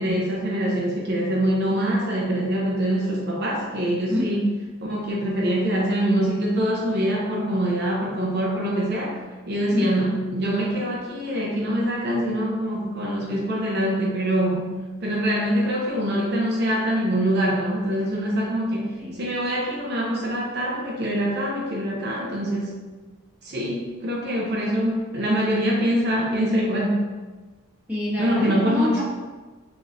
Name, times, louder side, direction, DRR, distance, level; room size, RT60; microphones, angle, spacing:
voice 1, 0.0-4.5 4.8-9.2 9.5-14.7 15.0-22.8 23.4-27.0 28.2-29.0, right 1 dB, 50° right, -3 dB, 0.6 m, -24 dB
voice 2, 4.1-4.5 9.7-10.2 19.0-19.1 27.9-29.0, left 1 dB, 5° right, -9 dB, 1.3 m, -27 dB
4.9 x 3.9 x 2.6 m, 1.3 s
head